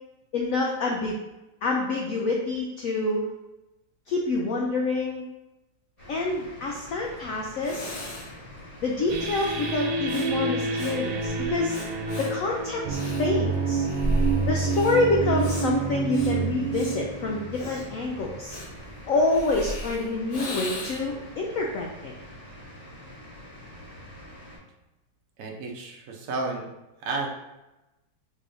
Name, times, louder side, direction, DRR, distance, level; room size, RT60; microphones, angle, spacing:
voice 1, 0.3-1.2 1.6-3.3 4.1-5.2 6.1-7.9 8.8-11.8 12.2-13.8 14.5-18.6 19.1-22.1, left 3 dB, 80° left, -1 dB, 0.7 m, -27 dB
sound 1, 6.0-24.6, equal, 20° left, 1.4 m, -46 dB
Breathing, 7.2-7.3 7.6-21.2, right 1 dB, 65° left, 1.5 m, -35 dB
sound 2, 9.1-18.5, right 4 dB, 80° right, 1.3 m, -28 dB
voice 2, 25.4-26.7 27.0-27.3, right 3 dB, 65° right, 1 dB, 0.9 m, -31 dB
4.4 x 3.4 x 2.6 m, 0.98 s
omnidirectional pair, 1.9 m